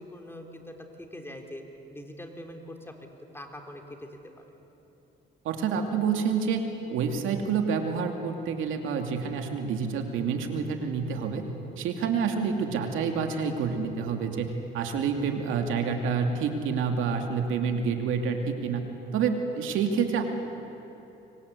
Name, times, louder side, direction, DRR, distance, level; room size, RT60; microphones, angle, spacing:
voice 1, 0.0-1.6 1.9-2.9 3.3-4.1 4.4-4.5, left 1 dB, 10° left, 3 dB, 3.5 m, -43 dB
voice 2, 5.4-6.6 6.9-11.4 11.8-18.8 19.1-20.2, right 6 dB, 90° right, 4 dB, 2.7 m, -28 dB
26.0 x 24.0 x 8.4 m, 3.0 s
cardioid pair, 90°, 20 cm